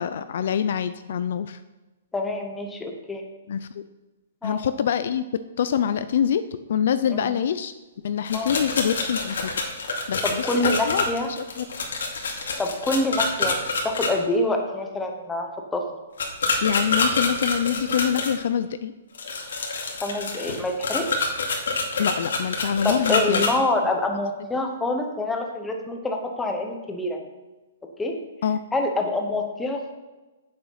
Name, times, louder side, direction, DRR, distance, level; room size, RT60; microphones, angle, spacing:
voice 1, 0.0-1.6 3.5-3.8 4.4-5.2 5.6-6.4 6.7-7.7 8.0-9.5 10.1-11.6 16.6-18.9 22.0-23.4 28.4-28.6, left 8 dB, 50° left, 12 dB, 0.4 m, -25 dB
voice 2, 2.1-3.2 4.4-4.6 7.1-7.3 8.3-8.5 10.2-11.3 12.6-13.6 13.8-15.8 20.0-21.3 22.8-27.2 28.0-28.1 28.7-29.9, left 2 dB, 5° left, 2 dB, 0.9 m, -26 dB
sound 1, 8.2-14.1 16.2-18.3 19.1-23.5, left 3 dB, 80° left, 2.4 m, -26 dB
8.7 x 7.3 x 5.7 m, 1.1 s
hypercardioid pair, 175°, 0 cm